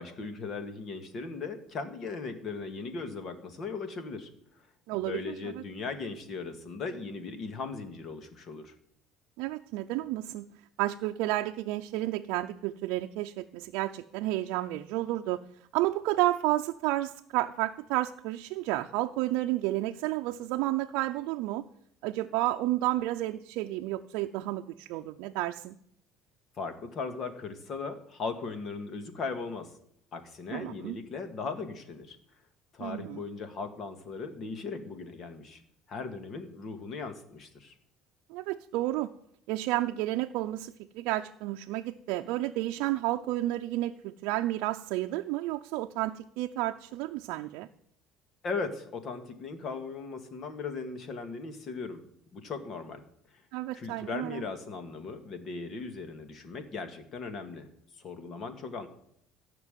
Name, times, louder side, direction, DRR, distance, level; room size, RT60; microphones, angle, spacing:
voice 1, 0.0-4.7 4.9-8.7 26.6-29.7 30.1-32.2 32.7-35.6 35.9-37.7 48.4-52.0 52.3-53.0 53.3-53.4 53.7-57.7 57.9-58.9, left 4 dB, 45° left, 8 dB, 2.1 m, -38 dB
voice 2, 4.9-5.6 9.4-10.5 10.8-15.4 15.7-21.6 22.0-25.8 30.5-31.0 32.8-33.2 38.3-39.1 39.5-47.7 53.5-54.4, right 16 dB, 80° right, 3 dB, 0.6 m, -31 dB
15.5 x 6.0 x 9.2 m, 0.70 s
cardioid pair, 120°, 0 cm